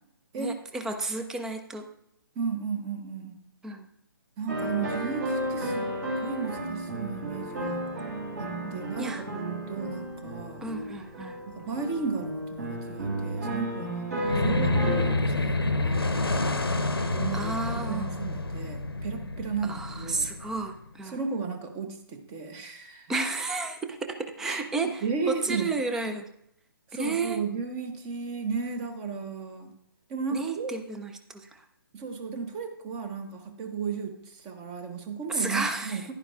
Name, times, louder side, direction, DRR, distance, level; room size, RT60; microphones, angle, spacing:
voice 1, 0.4-1.9 3.6-3.9 8.6-9.2 10.6-11.4 17.3-18.1 19.6-21.2 23.1-26.3 26.9-27.4 30.3-31.6 35.3-36.0, right 3 dB, 5° right, 7 dB, 0.3 m, -32 dB
voice 2, 2.4-3.4 4.4-5.9 6.2-7.8 8.4-10.6 11.5-16.5 16.8-20.3 21.0-23.1 24.4-24.6 25.0-25.7 26.9-29.7 30.1-30.7 31.9-36.1, right 5 dB, 20° right, 7 dB, 0.8 m, -34 dB
sound 1, 4.5-15.1, right 1 dB, 50° right, 3.2 m, -33 dB
sound 2, 14.2-20.8, left 2 dB, 85° left, 0.8 m, -28 dB
10.5 x 10.5 x 2.4 m, 0.76 s
figure-of-eight pair, 140°, 12 cm